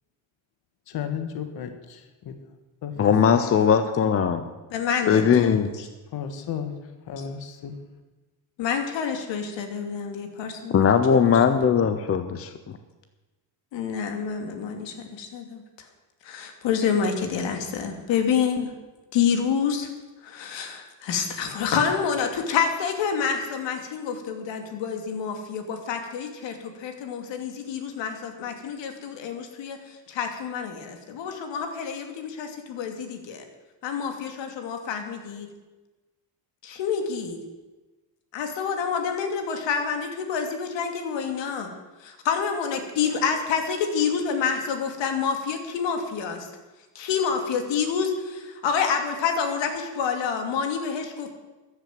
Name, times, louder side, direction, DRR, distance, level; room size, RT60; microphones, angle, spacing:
voice 1, 0.9-2.4 2.8-2.9 6.1-6.7 7.1-7.7, left 8 dB, 55° left, 7 dB, 1.8 m, -33 dB
voice 2, 3.0-4.4 5.1-5.7 10.7-12.8, left 7 dB, 30° left, 9 dB, 0.8 m, -20 dB
voice 3, 4.7-5.9 8.6-10.9 11.1-11.6 13.7-15.9 16.2-18.7 19.1-19.9 20.2-33.4 33.8-35.5 36.6-37.4 38.3-41.7 42.0-46.5 46.9-51.3, left 6 dB, 70° left, 5 dB, 2.8 m, -28 dB
14.5 x 11.0 x 7.8 m, 1.2 s
cardioid pair, 135°, 45 cm